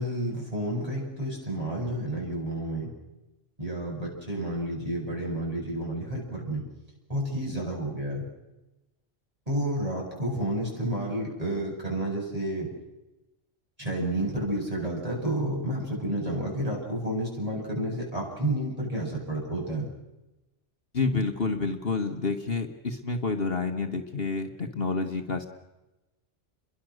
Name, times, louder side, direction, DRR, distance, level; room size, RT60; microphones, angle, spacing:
voice 1, 0.0-2.9 3.6-6.6 7.1-8.3 9.5-12.7 13.8-19.9, right 1 dB, 30° right, -2 dB, 8.1 m, -30 dB
voice 2, 20.9-25.5, left 4 dB, 50° left, 5 dB, 1.7 m, -29 dB
29.5 x 23.0 x 6.5 m, 1.0 s
omnidirectional pair, 1.3 m